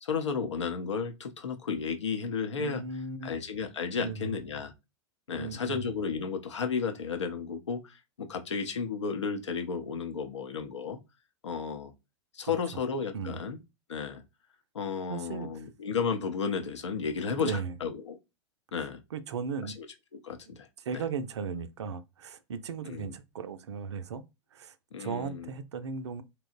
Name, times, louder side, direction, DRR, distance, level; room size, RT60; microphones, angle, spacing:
voice 1, 0.0-2.8 3.2-4.7 5.3-11.0 11.4-11.9 12.3-13.6 13.9-14.2 14.7-18.2 18.7-19.0 19.8-19.9 20.2-20.7 20.9-21.0 22.9-23.1 24.9-25.5, left 5 dB, 80° left, 0.5 m, -33 dB
voice 2, 2.6-3.3 4.0-4.3 5.4-5.9 12.5-12.6 13.1-13.4 15.1-15.6 17.3-17.7 19.1-19.7 20.9-24.2 24.5-26.2, right 5 dB, 75° right, 0.4 m, -36 dB
2.9 x 2.0 x 2.4 m
figure-of-eight pair, 95°, 15 cm